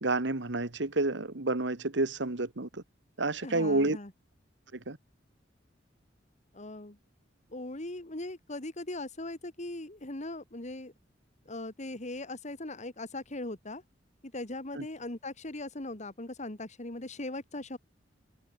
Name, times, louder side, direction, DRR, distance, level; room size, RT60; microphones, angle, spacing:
voice 1, 0.0-2.8 3.2-4.0 4.9-5.0 14.8-14.9, right 2 dB, 70° right, 1.6 m, -29 dB
voice 2, 3.4-4.1 6.5-7.0 7.5-10.9 11.5-13.8 14.2-17.8, left 2 dB, 40° left, 2.2 m, -39 dB
head